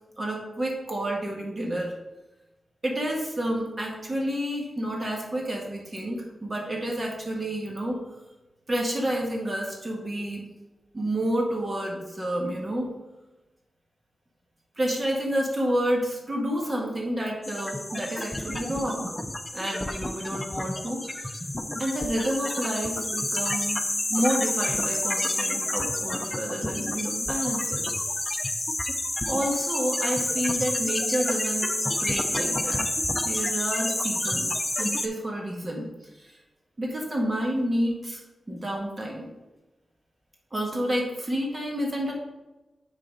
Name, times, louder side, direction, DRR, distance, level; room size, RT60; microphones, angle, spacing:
voice 1, 0.2-1.9 2.8-8.0 8.7-10.5 10.9-13.0 14.8-19.2 19.5-21.4 21.8-23.8 24.1-27.9 29.3-32.9 33.1-35.9 36.2-36.4 36.8-38.2 38.5-39.3 40.5-42.1, right 1 dB, 35° right, 0 dB, 1.7 m, -29 dB
White Noise Radio, 17.4-35.1, left 1 dB, 20° left, 0.6 m, -29 dB
6.7 x 4.1 x 5.2 m, 1.0 s
cardioid pair, 70°, 0 cm